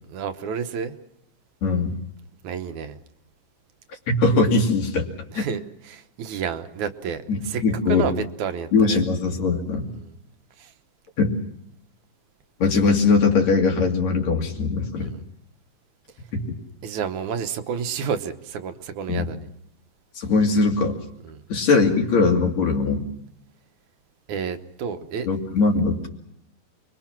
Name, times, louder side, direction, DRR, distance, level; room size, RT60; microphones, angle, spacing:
voice 1, 0.1-0.9 2.4-3.0 5.3-7.6 7.9-9.0 9.9-10.1 10.6-10.7 15.0-15.2 16.8-19.5 21.2-21.4 24.3-25.3, right 7 dB, 85° right, 8 dB, 2.5 m, -30 dB
voice 2, 1.6-2.0 4.1-5.1 5.4-5.5 7.3-8.1 8.7-9.9 11.2-11.4 12.6-15.1 16.3-16.4 19.1-19.3 20.2-20.9 21.5-23.1 25.2-26.1, left 4 dB, 70° left, 2 dB, 4.0 m, -20 dB
29.0 x 22.5 x 6.0 m, 0.76 s
omnidirectional pair, 3.3 m